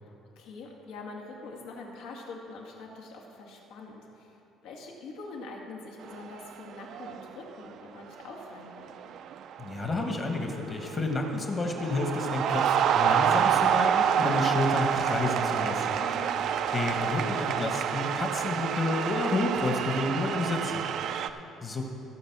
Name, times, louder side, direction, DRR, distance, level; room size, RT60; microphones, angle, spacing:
voice 1, 0.0-9.0 16.0-16.4, left 3 dB, 85° left, 0 dB, 2.0 m, -44 dB
sound 1, 6.0-6.5 6.8-7.3 8.2-8.4 8.8-11.0 11.4-21.3, right 8 dB, 50° right, 0.4 m, -28 dB
voice 2, 9.6-16.0 16.7-21.8, left 2 dB, 25° left, 3 dB, 1.2 m, -30 dB
15.5 x 5.2 x 7.3 m, 3.0 s
cardioid pair, 170°, 0 cm